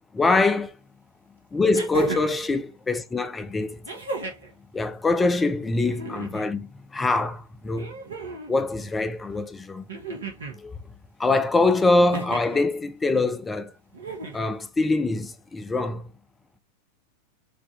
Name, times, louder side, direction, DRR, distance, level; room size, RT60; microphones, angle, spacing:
voice 1, 0.1-0.7 1.5-3.8 4.7-6.6 6.9-7.9 8.5-9.8 10.5-10.8 11.2-13.7 14.3-16.0, left 3 dB, 15° left, 0.6 m, -24 dB
sound 1, 0.7-0.8 1.7-2.4 3.9-4.5 5.8-6.5 7.7-8.5 9.9-10.6 12.1-12.6 13.9-14.5 15.8-15.9, right 3 dB, 70° right, 1.2 m, -34 dB
5.2 x 3.0 x 3.4 m
figure-of-eight pair, 90°, 0 cm